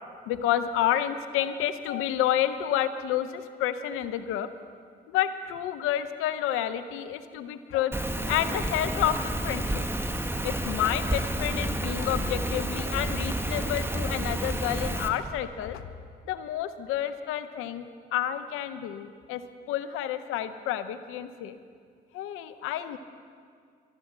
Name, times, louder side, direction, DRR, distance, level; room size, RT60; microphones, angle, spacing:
voice 1, 0.3-4.5 5.1-7.9 8.3-9.9 10.4-15.9 16.3-17.9 18.1-19.4 19.7-21.6 22.1-23.0, left 11 dB, 85° left, 12 dB, 0.7 m, -29 dB
Rain, 7.9-15.1, right 1 dB, 10° right, 1.5 m, -30 dB
13.0 x 11.0 x 7.3 m, 2.1 s
hypercardioid pair, 45°, 21 cm